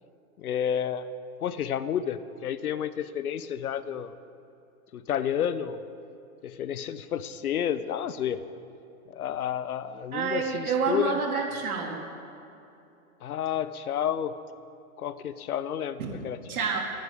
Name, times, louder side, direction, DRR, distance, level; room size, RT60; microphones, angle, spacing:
voice 1, 0.4-1.1 1.4-4.1 4.9-5.8 6.4-8.4 9.1-11.2 13.2-14.3 15.0-16.4, left 9 dB, 85° left, 14 dB, 0.9 m, -30 dB
voice 2, 10.1-12.0 16.0-16.1 16.5-16.8, right 5 dB, 80° right, 1 dB, 2.7 m, -28 dB
25.0 x 10.0 x 3.7 m, 2.8 s
hypercardioid pair, 165°, 43 cm